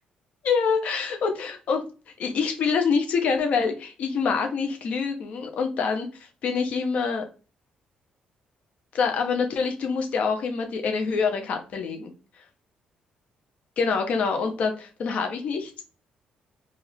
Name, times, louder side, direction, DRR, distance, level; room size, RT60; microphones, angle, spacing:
voice 1, 0.4-1.8 2.2-6.1 6.4-7.2 8.9-12.1 13.8-15.7, left 5 dB, 55° left, 5 dB, 1.0 m, -25 dB
4.3 x 2.9 x 3.6 m, 0.34 s
cardioid pair, 155°, 3 cm